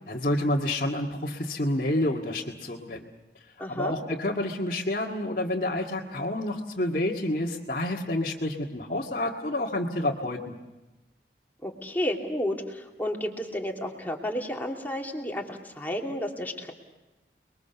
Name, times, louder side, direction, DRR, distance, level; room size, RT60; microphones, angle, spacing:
voice 1, 0.1-3.1 3.7-10.5, left 1 dB, 45° left, -3 dB, 1.9 m, -29 dB
voice 2, 3.6-4.0 11.6-16.7, left 1 dB, 10° left, 0 dB, 2.8 m, -32 dB
29.5 x 22.5 x 7.0 m, 1.1 s
head